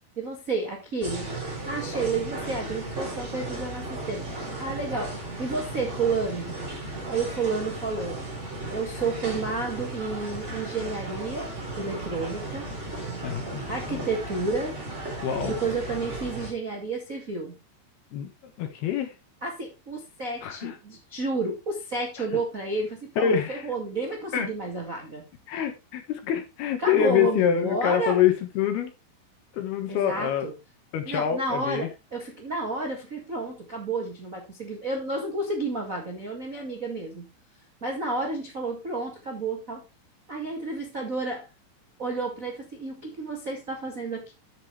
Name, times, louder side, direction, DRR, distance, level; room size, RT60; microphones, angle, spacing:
voice 1, 0.1-6.5 7.0-8.2 8.7-11.5 11.8-12.7 13.7-14.8 15.4-17.6 19.4-25.2 26.8-28.2 29.9-30.5 31.0-37.3 37.8-39.8 40.3-41.5 42.0-44.3, right 3 dB, 80° right, 0.7 m, -31 dB
sound 1, 1.0-16.5, right 2 dB, 15° right, 4.0 m, -35 dB
voice 2, 13.2-14.1 15.2-15.6 18.1-19.1 20.4-20.8 22.2-22.3 23.2-23.6 24.3-24.5 25.5-28.9 29.5-30.5 30.9-31.9, left 9 dB, 65° left, 2.9 m, -26 dB
11.0 x 7.7 x 3.4 m
omnidirectional pair, 5.5 m